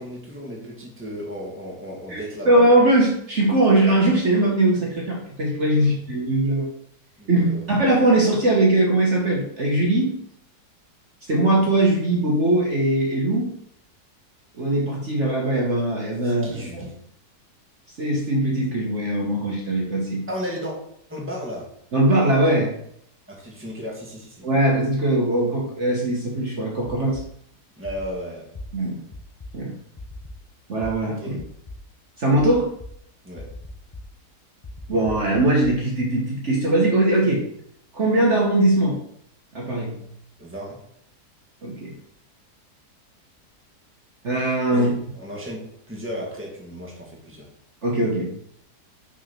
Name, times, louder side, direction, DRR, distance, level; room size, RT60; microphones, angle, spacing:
voice 1, 0.0-2.6 5.8-5.9 7.2-7.6 16.2-16.9 20.3-20.7 21.1-21.6 23.3-24.5 27.8-28.5 31.2-31.4 33.2-33.4 40.4-40.8 44.7-47.5, equal, 10° right, -2 dB, 1.7 m, -34 dB
voice 2, 2.1-6.7 7.3-10.1 11.3-13.5 14.6-16.5 16.7-16.8 18.0-20.2 21.9-22.7 24.4-27.2 28.7-29.0 29.5-29.7 30.7-31.4 32.2-32.7 34.9-37.4 37.9-39.0 39.5-40.0 41.6-41.9 44.2-44.9 47.8-48.3, right 1 dB, 50° right, -3 dB, 1.5 m, -20 dB
sound 1, 26.9-27.2 27.8-28.1 28.5-28.7 29.1-29.5 30.0-30.3 30.8-30.9 31.4-31.8 32.4-32.9 33.4-34.0 34.6-35.7, left 2 dB, 55° left, 0.3 m, -37 dB
6.1 x 4.0 x 5.9 m, 0.69 s
omnidirectional pair, 1.7 m